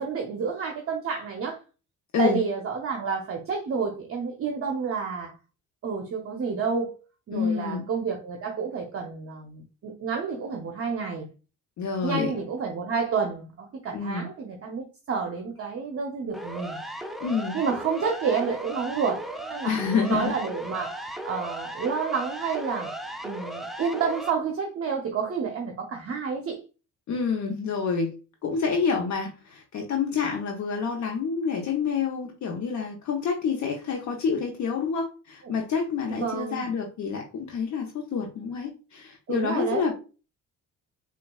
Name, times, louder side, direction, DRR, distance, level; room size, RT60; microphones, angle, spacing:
voice 1, 0.0-1.6 2.2-5.3 5.8-7.0 7.3-11.3 12.0-16.8 17.5-19.7 20.1-22.9 23.2-26.6 36.1-36.7 39.3-39.9, right 5 dB, 45° right, 2 dB, 0.7 m, -29 dB
voice 2, 7.3-7.8 11.8-12.3 13.9-14.3 17.2-17.6 19.6-20.4 27.1-28.1 28.4-39.9, left 5 dB, 60° left, 1 dB, 0.8 m, -28 dB
Siren, 16.3-24.3, right 1 dB, ahead, 0.4 m, -36 dB
4.0 x 2.3 x 2.2 m, 0.33 s
cardioid pair, 85°, 33 cm